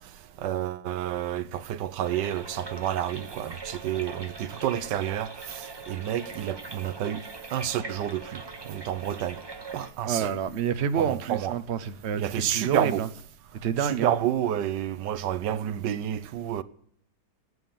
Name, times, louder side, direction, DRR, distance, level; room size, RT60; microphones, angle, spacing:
voice 1, 0.4-7.2 7.5-8.4 8.7-9.4 9.7-10.3 11.0-11.5 12.2-13.0 13.8-16.6, right 11 dB, 85° right, 1.4 m, -29 dB
sound 1, 2.0-9.9, right 4 dB, 20° right, 0.8 m, -41 dB
voice 2, 10.0-13.1 13.6-14.1, right 8 dB, 45° right, 1.0 m, -28 dB
19.0 x 8.1 x 7.1 m
omnidirectional pair, 1.9 m